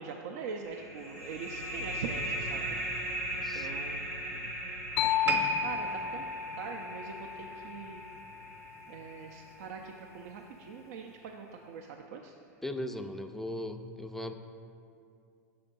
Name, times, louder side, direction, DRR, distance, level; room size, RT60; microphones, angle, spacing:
voice 1, 0.0-2.8 3.3-4.3 5.0-6.2 6.6-8.0 8.9-12.3, right 5 dB, 75° right, 2 dB, 0.4 m, -43 dB
sound 1, 0.7-9.9, right 1 dB, 90° right, 1.1 m, -39 dB
voice 2, 3.4-3.8 12.6-14.3, left 1 dB, 5° left, 7 dB, 0.3 m, -38 dB
sound 2, 5.0-8.7, left 11 dB, 80° left, 0.4 m, -34 dB
sound 3, 5.2-8.5 8.8-9.1 9.8-9.9, right 5 dB, 25° right, 0.7 m, -36 dB
6.8 x 3.5 x 5.2 m, 2.6 s
hypercardioid pair, 105°, 8 cm